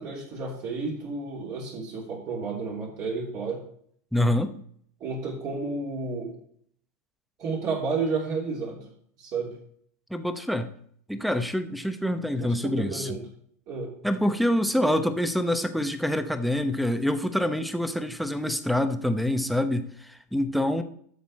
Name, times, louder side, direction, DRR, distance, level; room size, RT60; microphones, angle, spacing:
voice 1, 0.0-3.6 5.0-6.3 7.4-8.8 9.2-9.5 12.4-13.2 13.7-13.9, right 4 dB, 40° right, -3 dB, 3.1 m, -31 dB
voice 2, 4.1-4.5 10.1-10.7 11.1-13.2 14.0-20.8, left 1 dB, ahead, 10 dB, 0.9 m, -26 dB
12.0 x 7.0 x 4.3 m, 0.63 s
supercardioid pair, 120°, 9 cm